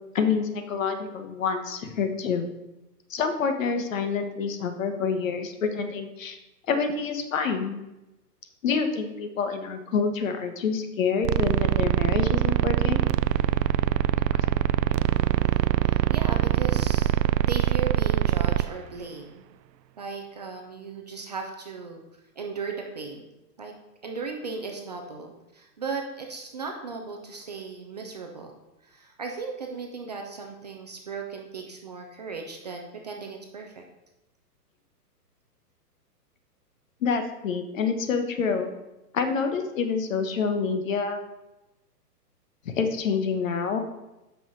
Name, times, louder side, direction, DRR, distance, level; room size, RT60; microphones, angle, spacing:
voice 1, 0.1-2.5 3.1-6.4 6.7-7.8 8.6-13.0 14.4-14.5 37.0-38.7 39.1-41.2 42.8-43.8, left 5 dB, 50° left, 7 dB, 1.3 m, -27 dB
sound 1, 11.2-18.7, right 13 dB, 90° right, 0.6 m, -23 dB
voice 2, 15.8-19.5 20.0-22.0 22.4-23.3 23.6-23.7 24.0-28.5 28.8-33.8, right 4 dB, 25° right, 2 dB, 0.5 m, -36 dB
6.3 x 5.7 x 6.9 m, 0.98 s
hypercardioid pair, 155°, 49 cm